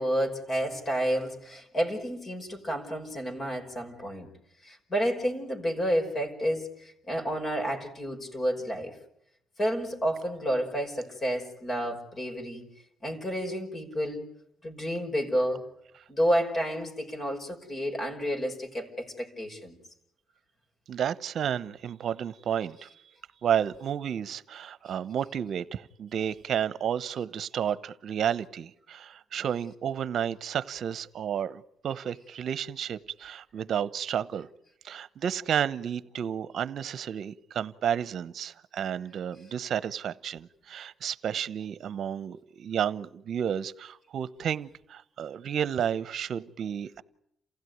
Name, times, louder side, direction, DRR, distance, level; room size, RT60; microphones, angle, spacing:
voice 1, 0.0-4.3 4.6-9.0 9.6-12.7 13.0-14.2 14.6-15.7 16.1-19.8, equal, 35° left, 5.4 m, -30 dB
voice 2, 20.9-22.9 23.4-34.5 34.8-47.0, right 9 dB, 65° right, 0.9 m, -31 dB
28.5 x 16.0 x 9.4 m
cardioid pair, 90°, 0 cm